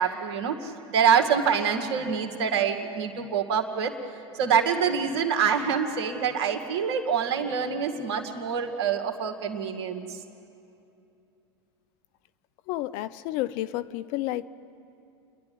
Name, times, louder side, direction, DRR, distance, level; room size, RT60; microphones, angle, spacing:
voice 1, 0.0-3.9 4.3-10.2, right 7 dB, 70° right, 4 dB, 2.1 m, -26 dB
voice 2, 12.7-14.5, left 15 dB, 60° left, 17 dB, 0.7 m, -30 dB
29.0 x 11.0 x 9.5 m, 2.7 s
hypercardioid pair, 90°, 15 cm